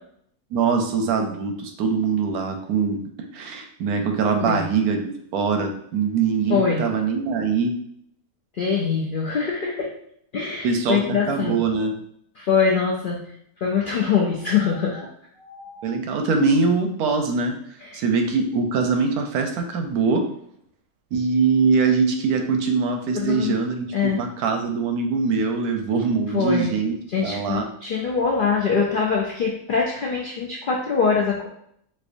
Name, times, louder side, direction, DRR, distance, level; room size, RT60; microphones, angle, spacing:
voice 1, 0.5-3.0 3.3-5.0 5.3-7.7 10.6-12.0 15.8-17.5 17.9-20.2 21.1-26.9 27.2-27.6, right 5 dB, 85° right, 4 dB, 1.1 m, -22 dB
voice 2, 6.5-6.9 8.5-9.9 10.3-11.6 12.4-13.3 13.6-15.1 15.4-15.9 17.8-18.0 23.1-23.6 23.9-24.2 26.3-26.8 27.1-31.5, left 5 dB, 80° left, -2 dB, 0.4 m, -23 dB
4.2 x 2.6 x 2.5 m, 0.70 s
omnidirectional pair, 1.6 m